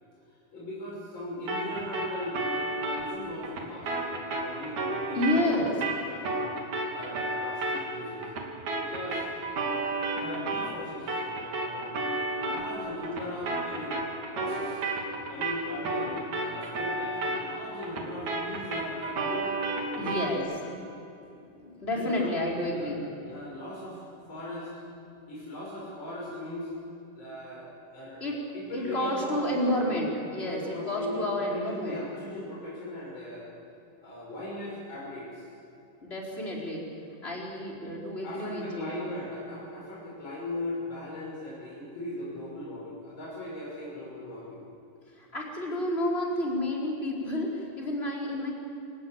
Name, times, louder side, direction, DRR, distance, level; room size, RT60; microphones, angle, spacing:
voice 1, 0.5-2.5 2.8-3.9 4.3-5.7 6.0-6.4 6.9-8.3 8.8-9.2 10.2-12.1 12.4-14.0 14.3-14.8 15.3-19.5 19.9-20.5 21.9-22.3 22.6-24.0 24.3-24.7 25.3-26.7 27.1-29.9 30.4-33.5 34.0-35.5 38.2-44.6, left 1 dB, 35° left, -5 dB, 6.5 m, -39 dB
sound 1, 1.5-10.8 11.1-20.4, right 2 dB, 65° right, 4.2 m, -32 dB
voice 2, 5.1-5.7 20.0-20.4 21.3-23.1 28.2-28.4 28.7-32.0 36.0-36.9 37.2-39.0 45.1-48.5, left 1 dB, 15° left, -3 dB, 4.4 m, -30 dB
27.5 x 16.5 x 8.8 m, 2.8 s
omnidirectional pair, 3.8 m